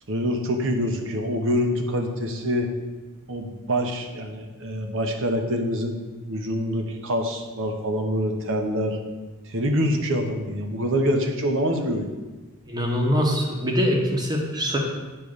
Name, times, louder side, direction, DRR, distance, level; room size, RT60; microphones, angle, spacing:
voice 1, 0.1-2.7 3.3-6.0 6.3-9.0 9.5-12.1, equal, 60° right, 4 dB, 1.0 m, -25 dB
voice 2, 12.7-14.8, equal, 20° right, 0 dB, 1.2 m, -23 dB
8.9 x 3.3 x 6.6 m, 1.2 s
head